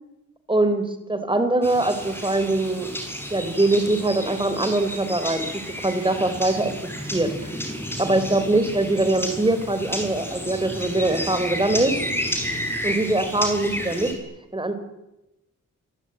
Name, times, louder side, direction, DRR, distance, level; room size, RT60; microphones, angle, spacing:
voice 1, 0.5-2.9 3.3-5.5 5.8-6.7 7.1-7.3 8.0-12.0 12.8-14.1 14.5-14.7, right 2 dB, 15° right, 10 dB, 3.8 m, -22 dB
sound 1, 1.6-14.1, equal, 5° left, 6.5 m, -31 dB
28.0 x 24.0 x 8.9 m, 0.94 s
wide cardioid pair, 130°, 32 cm